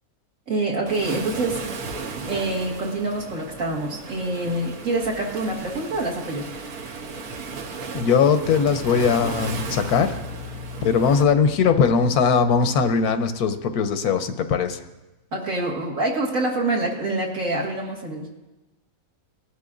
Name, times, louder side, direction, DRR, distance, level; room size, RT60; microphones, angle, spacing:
voice 1, 0.5-1.6 2.2-6.5 15.3-18.3, right 2 dB, 60° right, -2 dB, 2.2 m, -26 dB
Waves surf, 0.9-11.2, right 4 dB, 75° right, 1.4 m, -35 dB
voice 2, 7.9-10.2 10.8-14.8, left 6 dB, 85° left, 8 dB, 1.3 m, -20 dB
sound 1, 9.3-14.5, left 7 dB, 65° left, 0.9 m, -40 dB
19.0 x 11.5 x 2.5 m, 1.0 s
omnidirectional pair, 1.6 m